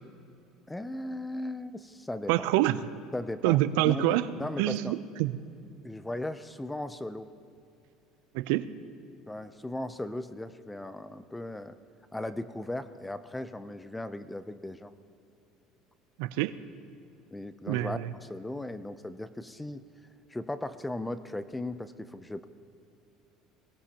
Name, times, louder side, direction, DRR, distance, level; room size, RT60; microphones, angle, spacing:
voice 1, 0.7-2.5 3.1-5.0 5.8-7.3 9.3-11.8 12.1-14.9 17.3-19.8 20.3-22.5, left 1 dB, 10° left, 13 dB, 0.5 m, -37 dB
voice 2, 2.3-2.8 3.4-4.2 4.6-5.4 8.3-8.7 16.2-16.5 17.7-18.1, right 16 dB, 80° right, 14 dB, 0.5 m, -26 dB
22.0 x 18.0 x 2.9 m, 2.5 s
supercardioid pair, 115°, 0 cm